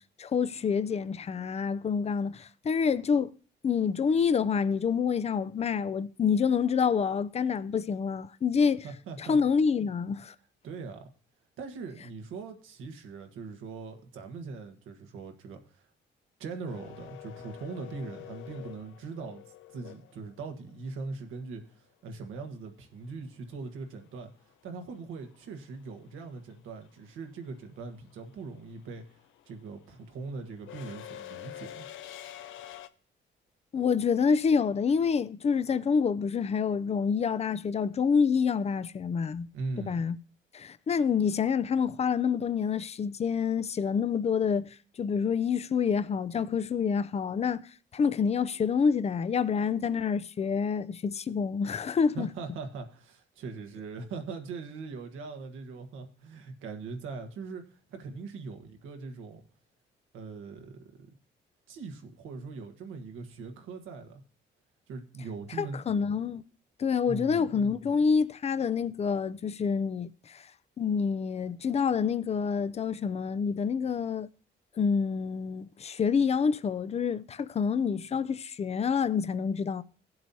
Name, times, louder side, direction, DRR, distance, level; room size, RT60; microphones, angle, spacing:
voice 1, 0.2-3.3 3.6-8.8 9.2-10.3 33.7-39.5 39.9-40.2 40.5-44.7 45.0-47.6 47.9-52.3 65.6-66.4 66.8-70.4 70.8-74.3 74.8-79.8, left 6 dB, 30° left, 0.5 m, -27 dB
voice 2, 8.8-9.4 10.6-11.1 11.6-15.8 16.4-19.4 19.7-31.9 39.5-40.0 52.1-59.4 60.1-61.1 61.7-64.2 64.9-65.8 67.1-67.5, right 4 dB, 85° right, 1.4 m, -41 dB
sound 1, 16.7-20.7 23.1-23.2 24.5-24.8 25.1-32.9, left 12 dB, 80° left, 0.6 m, -47 dB
17.0 x 7.7 x 2.8 m
cardioid pair, 90°, 20 cm